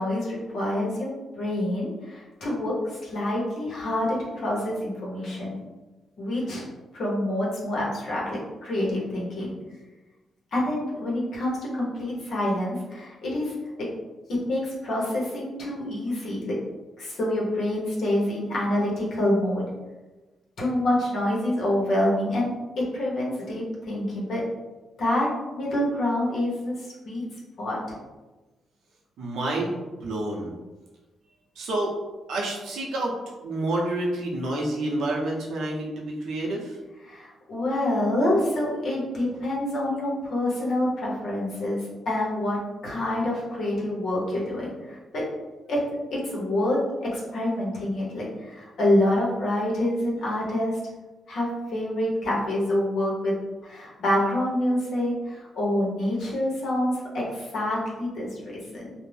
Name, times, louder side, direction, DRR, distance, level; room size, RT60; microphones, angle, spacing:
voice 1, 0.0-5.5 6.2-6.7 6.9-9.5 10.5-13.5 14.4-16.5 17.0-19.7 20.6-22.5 22.8-24.4 25.0-27.2 27.6-28.0 37.0-45.2 45.7-45.8 46.1-46.8 47.1-50.8 51.3-53.3 53.6-58.9, left 1 dB, 60° left, -4 dB, 0.9 m, -27 dB
voice 2, 29.2-30.5 31.6-31.9 32.3-33.1 33.4-36.8, right 1 dB, 90° right, -2 dB, 0.6 m, -28 dB
2.6 x 2.0 x 3.2 m, 1.2 s
cardioid pair, 155°, 0 cm